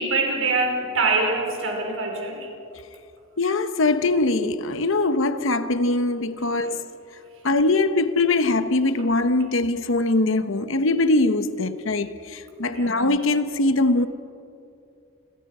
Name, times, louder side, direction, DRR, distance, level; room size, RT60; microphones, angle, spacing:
voice 1, 0.0-2.5 6.6-6.8 12.7-13.0, right 3 dB, 65° right, 5.0 m, -24 dB
voice 2, 3.4-6.8 7.4-14.1, left 2 dB, 65° left, 1.0 m, -22 dB
29.0 x 22.5 x 5.6 m
head